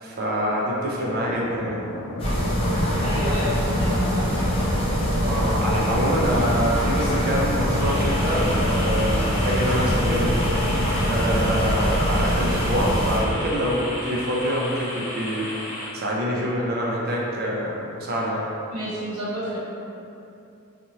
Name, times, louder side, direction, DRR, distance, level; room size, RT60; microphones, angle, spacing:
voice 1, 0.0-1.8 5.2-10.4 11.0-15.5 15.9-18.5, equal, 45° right, -4 dB, 0.5 m, -26 dB
sound 1, 1.0-11.5, left 2 dB, 85° left, 0.4 m, -35 dB
sound 2, 2.2-13.2, equal, 25° left, 0.5 m, -23 dB
voice 2, 3.0-4.5 18.7-19.6, equal, 70° right, -10 dB, 1.1 m, -30 dB
sound 3, 7.8-15.9, left 1 dB, 70° left, 0.9 m, -34 dB
2.8 x 2.5 x 2.7 m, 2.7 s
head